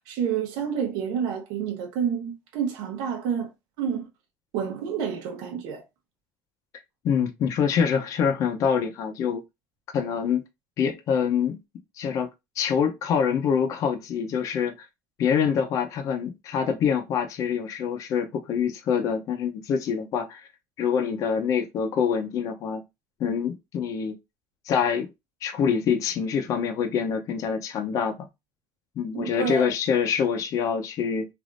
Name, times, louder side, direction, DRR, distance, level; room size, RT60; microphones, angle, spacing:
voice 1, 0.1-3.5 3.8-4.1 4.5-5.8 29.1-29.7, right 7 dB, 80° right, 0.9 m, -29 dB
voice 2, 7.0-9.4 9.9-10.4 10.8-11.6 12.0-12.3 12.6-14.9 15.2-20.5 20.8-22.8 23.2-24.2 24.7-25.1 25.4-28.3 29.0-31.3, left 7 dB, 55° left, 0.7 m, -25 dB
3.4 x 2.5 x 2.5 m
cardioid pair, 120°, 7 cm